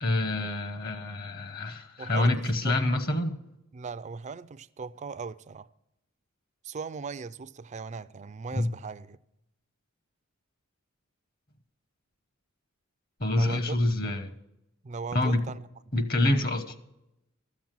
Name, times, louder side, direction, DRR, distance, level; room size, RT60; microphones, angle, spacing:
voice 1, 0.0-3.4 8.5-8.7 13.2-14.3 15.1-15.4 15.9-16.7, left 1 dB, 45° left, 1.1 m, -26 dB
voice 2, 2.0-2.8 3.7-5.7 6.6-9.2 13.3-13.8 14.8-15.6, right 4 dB, 35° right, 0.4 m, -38 dB
13.0 x 7.3 x 7.6 m
head